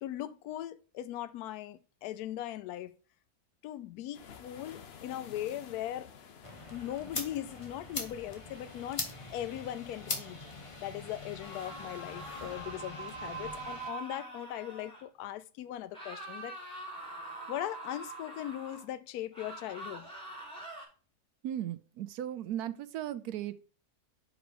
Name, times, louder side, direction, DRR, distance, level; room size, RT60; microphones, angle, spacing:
voice 1, 0.0-2.9 3.6-6.1 6.7-10.4 10.8-16.6 17.5-20.1, left 12 dB, 75° left, 1.1 m, -39 dB
sound 1, 4.1-12.5, left 7 dB, 55° left, 0.7 m, -54 dB
sound 2, 6.4-13.9, left 2 dB, 20° left, 1.0 m, -42 dB
sound 3, 11.4-15.0 15.9-18.9 19.3-20.8, right 2 dB, 5° left, 2.1 m, -44 dB
voice 2, 21.4-23.6, right 11 dB, 75° right, 1.1 m, -37 dB
5.0 x 5.0 x 5.0 m
omnidirectional pair, 1.7 m